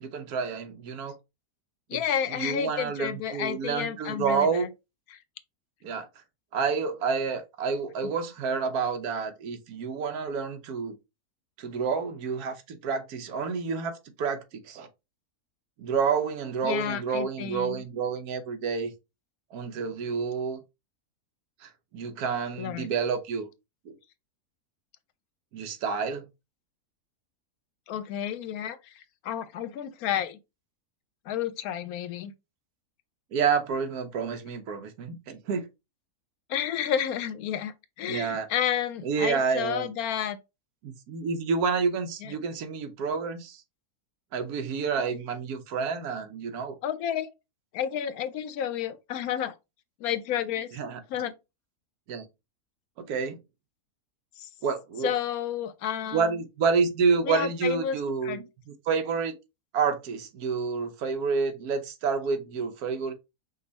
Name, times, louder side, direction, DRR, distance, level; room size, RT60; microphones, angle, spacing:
voice 1, 0.0-1.1 1.9-2.0 2.3-4.7 5.8-6.1 6.5-11.0 11.6-14.9 15.8-18.9 19.5-20.6 21.6-23.5 23.9-24.0 25.5-26.3 33.3-35.7 38.1-38.5 39.0-39.9 40.8-43.6 44.3-46.8 50.7-51.0 52.1-52.3 53.0-53.4 54.6-55.1 56.1-58.5 58.9-59.3 59.7-63.1, right 5 dB, 75° right, 1.3 m, -29 dB
voice 2, 1.9-4.7 5.1-5.2 16.6-17.8 22.6-22.9 27.9-30.4 31.3-32.3 36.5-40.4 42.2-42.3 46.8-47.3 47.7-49.5 50.0-50.7 51.1-51.3 54.4-54.5 55.0-56.4 57.2-58.0 58.2-58.4, left 9 dB, 75° left, 1.0 m, -31 dB
5.3 x 2.4 x 3.9 m
omnidirectional pair, 1.7 m